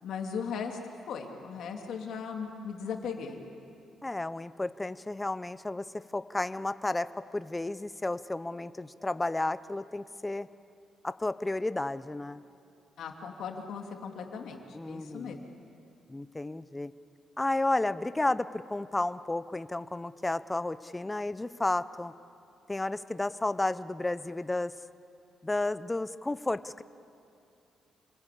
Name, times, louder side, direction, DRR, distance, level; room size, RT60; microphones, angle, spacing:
voice 1, 0.0-0.8 1.1-3.4 13.0-15.3, left 6 dB, 75° left, 3 dB, 2.6 m, -38 dB
voice 2, 4.0-10.5 11.0-12.4 14.7-15.4 16.1-16.9 17.4-22.1 22.7-24.7 25.4-26.8, left 2 dB, 10° left, 14 dB, 0.5 m, -32 dB
28.5 x 19.5 x 8.5 m, 2.6 s
cardioid pair, 145°, 0 cm